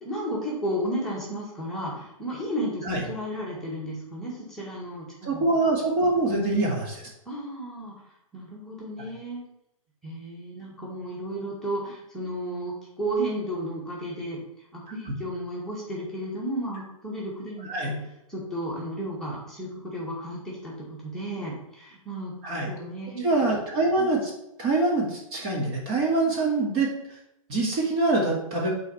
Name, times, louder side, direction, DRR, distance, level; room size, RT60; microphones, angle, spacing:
voice 1, 0.0-5.4 7.3-7.9 8.3-9.4 10.0-14.4 14.7-17.9 18.3-22.3 22.7-23.5, right 1 dB, ahead, -7 dB, 2.1 m, -33 dB
voice 2, 5.2-7.1 9.0-9.1 17.7-18.0 22.4-22.7 23.2-24.3 24.6-26.9 27.5-28.7, right 2 dB, 30° right, -2 dB, 2.3 m, -24 dB
8.1 x 4.1 x 5.7 m, 0.83 s
hypercardioid pair, 145°, 18 cm